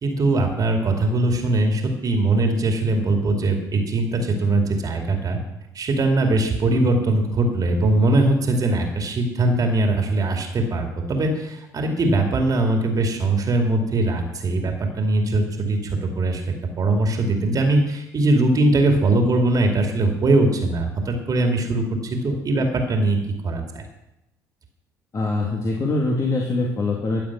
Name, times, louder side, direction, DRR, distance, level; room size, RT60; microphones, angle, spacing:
voice 1, 0.0-5.4 5.7-23.2 23.4-23.8, right 2 dB, 40° right, 3 dB, 2.5 m, -21 dB
voice 2, 25.1-27.2, left 2 dB, 35° left, -1 dB, 2.5 m, -23 dB
15.5 x 7.1 x 6.1 m, 0.89 s
hypercardioid pair, 60°, 9 cm